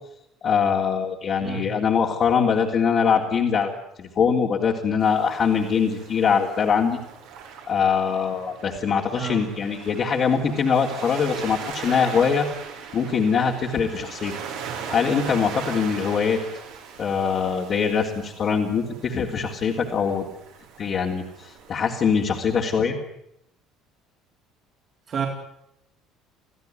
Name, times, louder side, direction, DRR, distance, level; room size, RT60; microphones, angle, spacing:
voice 1, 0.4-3.7 4.0-7.0 7.7-12.5 12.9-14.3 14.9-16.4 17.0-20.2 20.8-23.0, left 6 dB, 45° left, -1 dB, 3.4 m, -22 dB
voice 2, 1.4-1.7 9.1-9.4 25.1-25.3, right 6 dB, 40° right, 1 dB, 4.2 m, -29 dB
Waves surf, 5.0-22.8, right 6 dB, 70° right, 5.8 m, -39 dB
28.5 x 16.5 x 9.4 m, 0.80 s
figure-of-eight pair, 60°, 0 cm